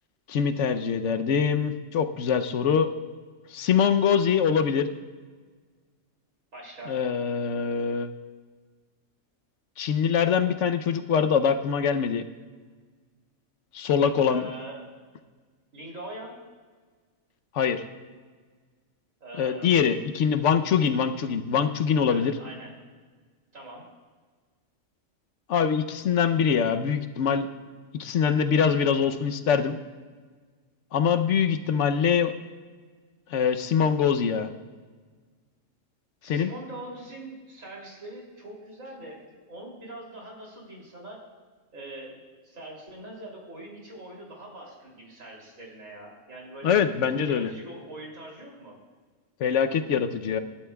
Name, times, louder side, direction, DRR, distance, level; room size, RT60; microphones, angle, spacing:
voice 1, 0.3-2.9 3.5-4.9 6.9-8.1 9.8-12.3 13.7-14.5 17.5-17.8 19.4-22.4 25.5-27.5 27.9-29.8 30.9-32.3 33.3-34.5 36.2-36.5 46.6-47.5 49.4-50.4, left 7 dB, 70° left, 8 dB, 1.1 m, -23 dB
voice 2, 6.5-7.0 14.3-14.8 15.7-16.4 19.2-19.7 22.1-22.7 23.5-23.8 36.2-41.2 41.7-46.8 47.1-48.8, right 1 dB, 80° right, -2 dB, 3.5 m, -42 dB
27.5 x 11.5 x 2.3 m, 1.5 s
omnidirectional pair, 1.3 m